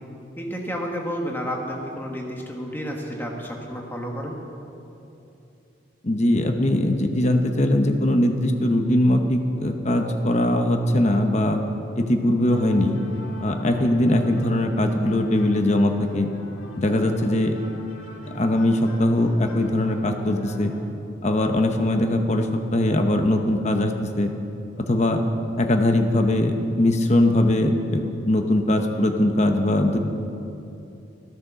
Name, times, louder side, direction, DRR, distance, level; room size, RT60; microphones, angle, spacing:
voice 1, 0.4-4.4, equal, 10° left, 0 dB, 1.5 m, -31 dB
voice 2, 6.0-11.6 12.0-13.0 13.4-16.3 16.8-17.5 18.3-20.7 21.2-23.9 24.2-24.3 24.8-25.2 25.6-30.0, left 1 dB, 35° left, 5 dB, 0.9 m, -21 dB
sound 1, 12.5-20.8, left 1 dB, 80° left, 1.8 m, -40 dB
13.5 x 10.0 x 6.8 m, 2.8 s
head